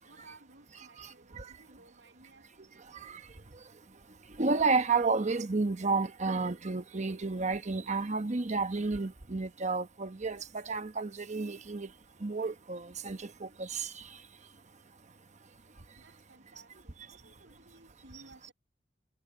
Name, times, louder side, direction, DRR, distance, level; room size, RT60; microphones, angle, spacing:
voice 1, 0.0-2.8 16.0-18.5, right 2 dB, 75° right, 8.0 m, -58 dB
voice 2, 4.4-11.9 12.2-14.0, right 4 dB, 40° right, 1.0 m, -31 dB
head